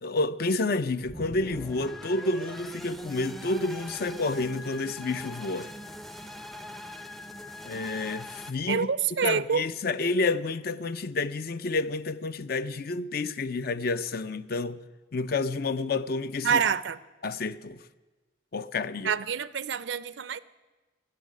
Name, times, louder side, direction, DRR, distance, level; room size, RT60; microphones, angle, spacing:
voice 1, 0.0-5.7 7.6-8.9 9.2-14.8 15.1-16.6 17.2-17.8 18.5-19.1, left 3 dB, 50° left, 0.5 m, -29 dB
sound 1, 1.0-8.5, left 1 dB, ahead, 0.5 m, -42 dB
voice 2, 8.7-9.7 16.4-17.0 19.0-20.4, right 7 dB, 65° right, 0.5 m, -27 dB
13.5 x 8.1 x 9.4 m
head